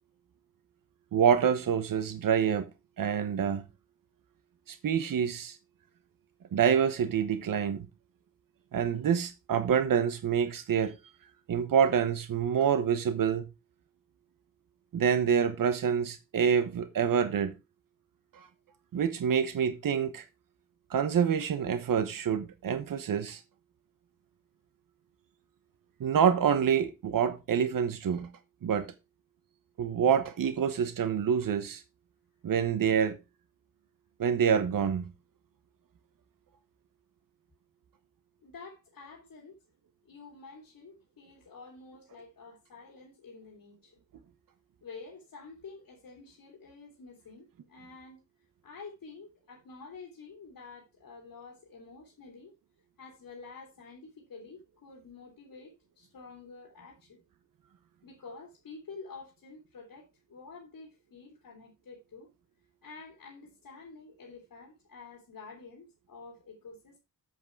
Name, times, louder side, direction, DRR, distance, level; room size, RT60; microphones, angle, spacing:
voice 1, 1.1-2.7 3.0-3.6 4.7-5.6 6.5-7.9 8.7-11.0 11.5-13.5 14.9-17.5 18.3-18.5 18.9-20.2 20.9-23.4 26.0-28.3 28.6-28.9 29.8-31.8 32.4-33.2 34.2-35.0, right 7 dB, 75° right, 1.1 m, -27 dB
voice 2, 38.4-39.6 40.0-44.0 44.8-48.2 48.6-52.5 53.0-57.2 58.0-62.3 62.8-67.0, left 4 dB, 70° left, 3.1 m, -49 dB
8.1 x 7.7 x 4.6 m
wide cardioid pair, 155°, 34 cm